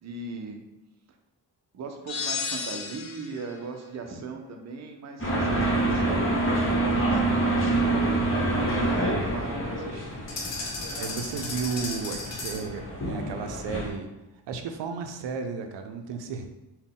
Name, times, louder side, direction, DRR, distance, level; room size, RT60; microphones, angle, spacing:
voice 1, 0.0-0.6 1.7-10.2, right 4 dB, 40° right, 4 dB, 0.5 m, -38 dB
sound 1, 2.1-3.4, left 5 dB, 65° left, 0.6 m, -32 dB
sound 2, 5.2-13.9, right 2 dB, 30° left, 1.0 m, -27 dB
sound 3, 10.3-12.8, left 3 dB, 85° left, 0.9 m, -35 dB
voice 2, 11.0-14.1 14.5-16.5, right 5 dB, 85° right, 6 dB, 0.5 m, -33 dB
3.9 x 2.2 x 3.6 m, 1.0 s
wide cardioid pair, 125°, 42 cm